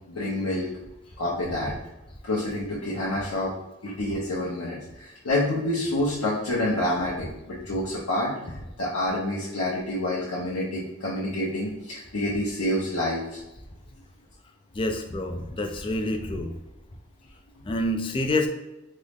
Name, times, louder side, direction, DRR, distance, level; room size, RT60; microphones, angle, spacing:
voice 1, 0.1-0.7 1.2-1.7 2.2-3.5 3.8-13.4, left 1 dB, 85° left, -7 dB, 0.7 m, -28 dB
voice 2, 14.7-16.5 17.6-18.5, left 1 dB, 25° left, 5 dB, 0.3 m, -27 dB
3.6 x 2.0 x 3.4 m, 0.96 s
head